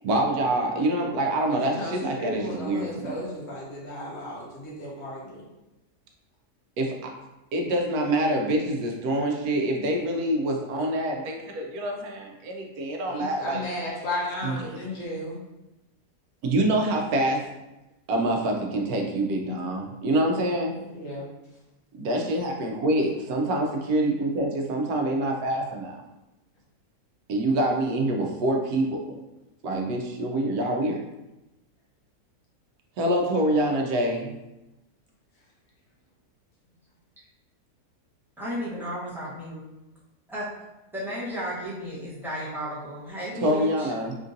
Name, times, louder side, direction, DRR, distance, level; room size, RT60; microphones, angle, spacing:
voice 1, 0.0-3.2 6.8-7.1 7.5-13.6 14.4-14.6 16.4-17.4 18.1-20.9 21.9-26.0 27.3-29.2 29.6-31.0 33.0-34.4 43.4-44.2, right 1 dB, 75° right, 1 dB, 1.1 m, -26 dB
voice 2, 1.7-5.4 13.1-15.4 19.4-19.6 20.9-21.3, left 1 dB, 55° left, -4 dB, 0.9 m, -34 dB
voice 3, 38.4-39.6 40.3-40.5 40.9-43.9, equal, ahead, -9 dB, 0.6 m, -33 dB
3.6 x 2.5 x 2.6 m, 0.99 s
omnidirectional pair, 1.6 m